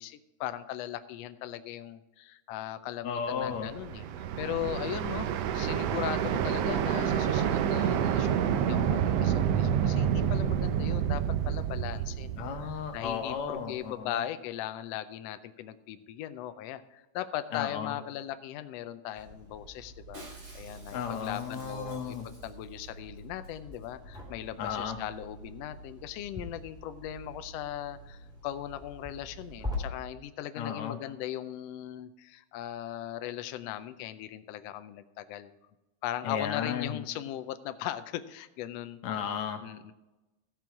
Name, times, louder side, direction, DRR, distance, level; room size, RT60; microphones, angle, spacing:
voice 1, 0.0-4.0 4.4-5.3 5.5-35.5 36.0-39.0 39.6-39.9, left 12 dB, 85° left, 10 dB, 1.4 m, -38 dB
voice 2, 3.0-3.7 12.4-14.2 17.5-17.9 20.9-22.3 24.6-25.0 30.6-31.0 36.2-37.0 39.0-39.6, left 7 dB, 70° left, 5 dB, 2.2 m, -34 dB
sound 1, 3.5-13.5, right 9 dB, 75° right, 1.5 m, -28 dB
sound 2, 19.2-29.7, right 1 dB, ahead, 2.6 m, -46 dB
Shatter, 20.1-22.9 23.2-23.3 23.4-23.9 24.1-24.2, right 1 dB, 55° right, 5.5 m, -52 dB
15.5 x 6.0 x 4.6 m, 1.0 s
omnidirectional pair, 3.4 m